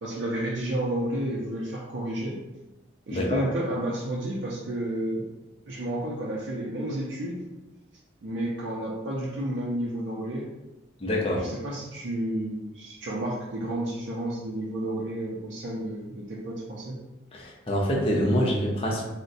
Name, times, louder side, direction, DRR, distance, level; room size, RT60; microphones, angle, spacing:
voice 1, 0.0-2.4 3.1-5.3 5.7-7.5 8.2-10.5 11.3-17.0, right 1 dB, 75° right, -4 dB, 0.5 m, -31 dB
voice 2, 3.1-3.4 11.0-11.5 17.3-19.0, equal, 30° left, -2 dB, 0.5 m, -26 dB
2.6 x 2.1 x 3.9 m, 1.1 s
head